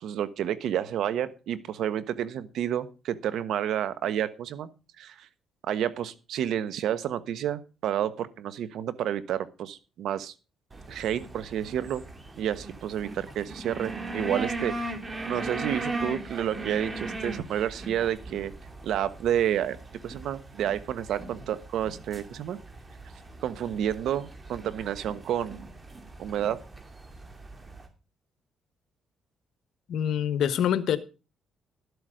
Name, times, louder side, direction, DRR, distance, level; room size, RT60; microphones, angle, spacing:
voice 1, 0.0-4.7 5.0-5.3 5.6-10.3 10.9-12.0 12.4-14.9 15.3-18.5 18.8-19.8 20.0-22.6 23.4-25.7 26.2-26.6, right 10 dB, 75° right, 1.2 m, -30 dB
sound 1, 10.7-27.9, right 2 dB, 25° right, 2.7 m, -38 dB
voice 2, 29.9-31.0, left 9 dB, 75° left, 1.2 m, -25 dB
13.0 x 8.1 x 5.1 m
cardioid pair, 90°, 0 cm